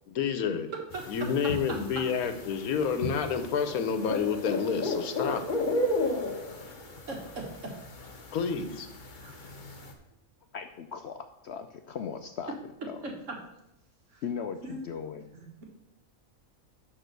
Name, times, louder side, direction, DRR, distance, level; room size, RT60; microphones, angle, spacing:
voice 1, 0.1-0.7 1.1-5.5 8.3-8.9, left 6 dB, 85° left, 9 dB, 1.3 m, -29 dB
sound 1, 0.9-9.9, left 2 dB, 40° left, 1.1 m, -34 dB
voice 2, 1.4-1.8 7.1-7.7 9.2-9.6 13.0-13.4 14.1-14.2 14.6-14.8 15.3-15.6, right 2 dB, 60° right, 1 dB, 1.9 m, -40 dB
voice 3, 10.5-12.6 12.8-13.0 14.2-15.2, left 7 dB, 65° left, 7 dB, 0.7 m, -38 dB
10.5 x 3.9 x 6.7 m, 0.85 s
omnidirectional pair, 1.5 m